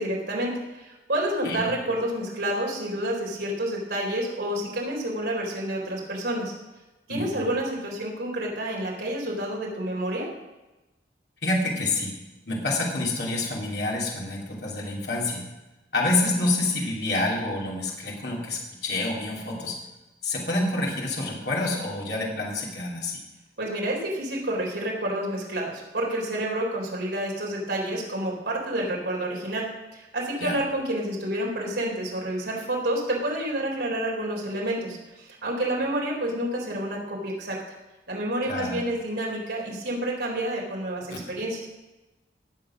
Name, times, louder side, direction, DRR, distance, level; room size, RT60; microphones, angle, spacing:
voice 1, 0.0-6.5 7.1-10.3 23.6-29.7 29.9-37.6 38.1-41.7, right 1 dB, 70° right, -2 dB, 4.3 m, -29 dB
voice 2, 7.1-7.5 11.4-12.1 12.5-15.4 15.9-19.8 20.2-23.2 30.4-30.6 38.4-38.8 41.1-41.2, left 2 dB, 65° left, -3 dB, 3.0 m, -27 dB
19.0 x 7.3 x 6.2 m, 1.1 s
head